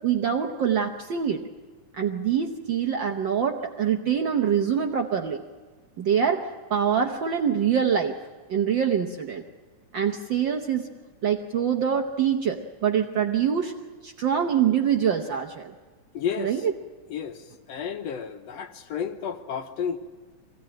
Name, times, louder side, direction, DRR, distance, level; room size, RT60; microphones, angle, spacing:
voice 1, 0.0-1.4 2.0-5.4 6.0-8.1 8.5-9.4 9.9-10.9 11.2-13.7 14.0-15.7 16.4-16.7, right 8 dB, 80° right, 4 dB, 1.0 m, -24 dB
voice 2, 16.1-16.7 17.1-20.0, left 7 dB, 70° left, 7 dB, 1.8 m, -32 dB
23.0 x 16.5 x 9.0 m, 1.4 s
omnidirectional pair, 3.4 m